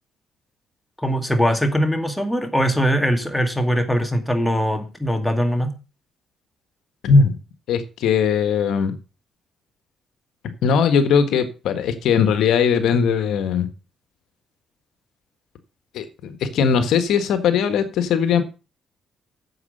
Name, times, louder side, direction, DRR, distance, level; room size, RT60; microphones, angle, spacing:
voice 1, 1.0-5.7, equal, 5° left, 5 dB, 2.3 m, -21 dB
voice 2, 7.0-7.3 7.7-8.9 10.6-13.7 15.9-18.4, left 6 dB, 80° left, 9 dB, 1.5 m, -19 dB
9.7 x 7.5 x 6.6 m, 0.32 s
cardioid pair, 90°, 0 cm